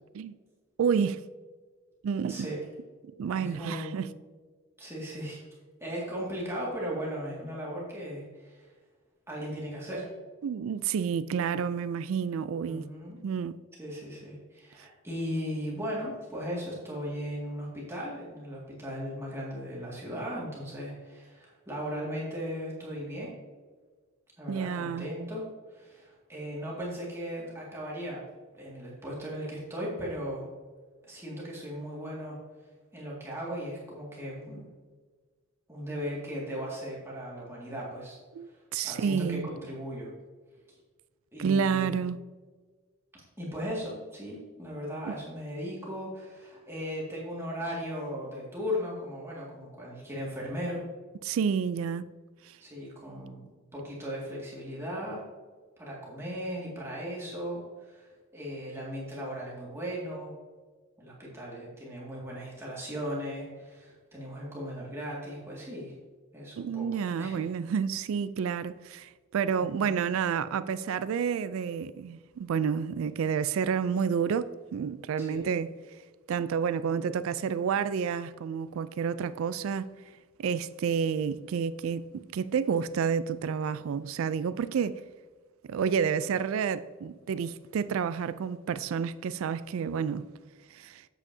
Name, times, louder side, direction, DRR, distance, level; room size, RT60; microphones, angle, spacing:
voice 1, 0.8-1.2 2.0-2.5 3.2-4.1 10.4-12.9 13.2-13.6 24.5-25.1 38.3-39.5 41.4-42.2 45.1-45.2 51.2-52.1 52.4-52.6 66.6-75.7 76.3-79.9 80.4-85.0 85.7-90.2 90.7-91.1, right 6 dB, 65° right, 0.3 m, -30 dB
voice 2, 2.3-2.6 3.3-4.0 4.8-5.4 5.8-8.7 9.3-10.1 12.6-13.2 13.8-23.3 24.4-28.2 28.5-30.5 31.1-32.4 32.9-34.7 35.7-38.2 38.8-40.1 41.3-42.0 43.4-50.8 52.6-53.4 53.7-55.2 55.8-60.3 61.0-65.9 66.3-66.9 67.2-67.5 69.5-70.0 75.2-75.5, equal, 10° right, 2.0 m, -37 dB
8.2 x 8.0 x 2.7 m
head